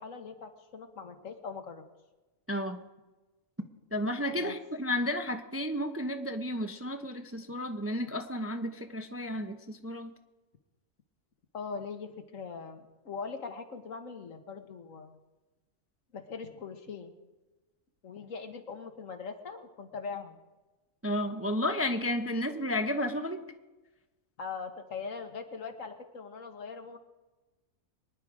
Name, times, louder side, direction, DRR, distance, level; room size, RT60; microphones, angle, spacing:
voice 1, 0.0-1.8 4.3-4.5 11.5-15.2 16.1-17.1 18.0-20.4 24.4-27.0, left 5 dB, 70° left, 6 dB, 1.7 m, -41 dB
voice 2, 2.5-2.8 3.9-10.1 21.0-23.4, left 1 dB, 15° right, 6 dB, 0.6 m, -32 dB
24.0 x 10.5 x 4.9 m, 1.1 s
omnidirectional pair, 1.4 m